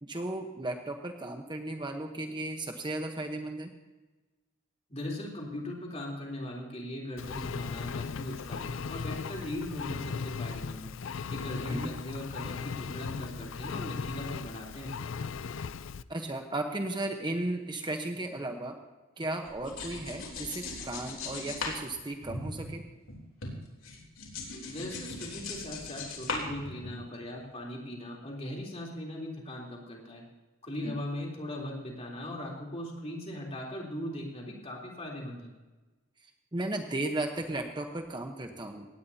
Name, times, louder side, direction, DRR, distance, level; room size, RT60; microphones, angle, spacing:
voice 1, 0.0-3.7 11.7-11.9 16.1-18.7 19.2-22.8 30.8-31.0 36.5-38.9, right 2 dB, 20° right, 4 dB, 1.0 m, -35 dB
voice 2, 4.9-10.9 11.3-14.9 24.7-30.2 30.6-35.5, left 1 dB, 30° left, -2 dB, 3.5 m, -39 dB
Engine, 7.2-16.0, left 5 dB, 70° left, 0.4 m, -37 dB
sound 1, 19.4-23.2 23.4-27.2, left 3 dB, 85° left, 3.5 m, -39 dB
17.5 x 17.5 x 2.8 m, 1.2 s
head